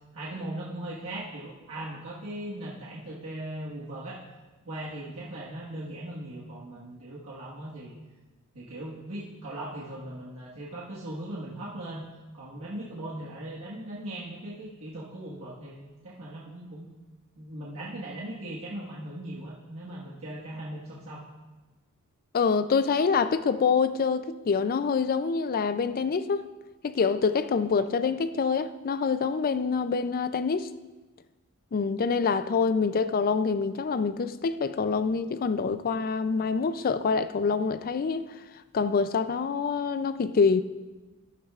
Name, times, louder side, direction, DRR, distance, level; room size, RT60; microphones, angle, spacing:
voice 1, 0.1-4.2 4.6-7.9 8.5-12.0 12.3-16.9 17.3-21.2, right 1 dB, 65° right, 1.5 m, -39 dB
voice 2, 22.3-26.4 26.8-30.7 31.7-38.3 38.7-40.6, left 5 dB, 40° left, 0.4 m, -26 dB
13.0 x 10.5 x 2.4 m
head